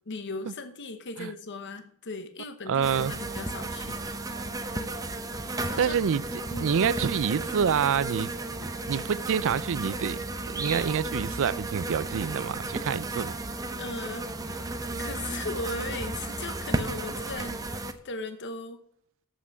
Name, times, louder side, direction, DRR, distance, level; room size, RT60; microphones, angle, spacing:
voice 1, 0.1-4.0 4.3-5.9 6.5-6.8 13.8-14.6 15.0-18.8, left 3 dB, 55° left, 1.0 m, -38 dB
voice 2, 2.7-3.1 5.8-6.2 6.6-8.3 8.9-10.2 10.5-13.4, right 7 dB, 60° right, 0.4 m, -27 dB
sound 1, 2.8-17.9, right 2 dB, 15° right, 0.7 m, -34 dB
7.8 x 6.1 x 7.1 m
head